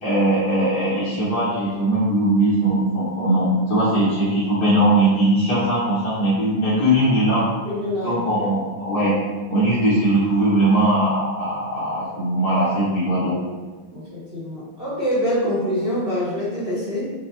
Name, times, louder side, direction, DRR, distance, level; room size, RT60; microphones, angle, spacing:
voice 1, 0.0-7.5 8.0-9.1 9.5-13.3, right 1 dB, 50° left, -8 dB, 1.9 m, -20 dB
voice 2, 7.7-8.5 13.9-17.1, equal, 35° right, -9 dB, 1.0 m, -25 dB
6.4 x 2.6 x 2.8 m, 1.4 s
omnidirectional pair, 2.2 m